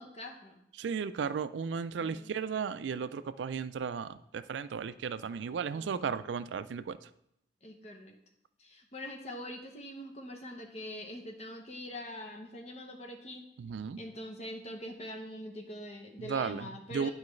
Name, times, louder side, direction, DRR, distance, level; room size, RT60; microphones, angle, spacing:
voice 1, 0.0-0.6 2.0-2.3 5.7-6.3 7.6-8.2 8.6-13.4 14.0-17.1, left 1 dB, 35° left, 3 dB, 0.8 m, -44 dB
voice 2, 0.8-7.1 13.6-14.0 16.2-17.1, right 6 dB, 85° right, 13 dB, 0.4 m, -35 dB
10.5 x 4.7 x 3.2 m, 0.77 s
head